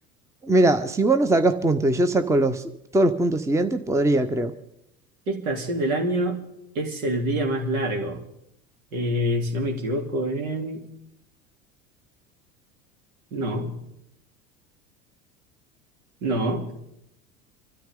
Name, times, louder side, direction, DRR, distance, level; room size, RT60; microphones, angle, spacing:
voice 1, 0.4-2.6 2.9-4.5, right 2 dB, 5° right, 10 dB, 0.9 m, -21 dB
voice 2, 5.3-6.4 6.7-8.2 8.9-10.8 13.3-13.7 16.2-16.7, right 1 dB, 75° right, 2 dB, 3.2 m, -26 dB
25.5 x 13.5 x 3.8 m, 0.80 s
figure-of-eight pair, 75°, 43 cm